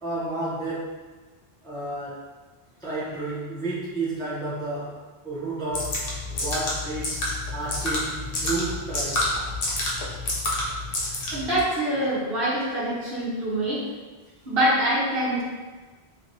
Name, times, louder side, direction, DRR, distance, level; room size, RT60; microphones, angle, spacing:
voice 1, 0.0-0.9 1.6-2.2 2.8-6.1 6.3-7.3 7.5-9.3, right 2 dB, 5° left, -9 dB, 0.6 m, -31 dB
sound 1, 5.7-11.6, left 2 dB, 65° left, 0.9 m, -28 dB
voice 2, 11.3-13.8 14.4-15.4, right 1 dB, 65° right, -8 dB, 1.2 m, -24 dB
3.1 x 2.8 x 2.6 m, 1.3 s
omnidirectional pair, 1.1 m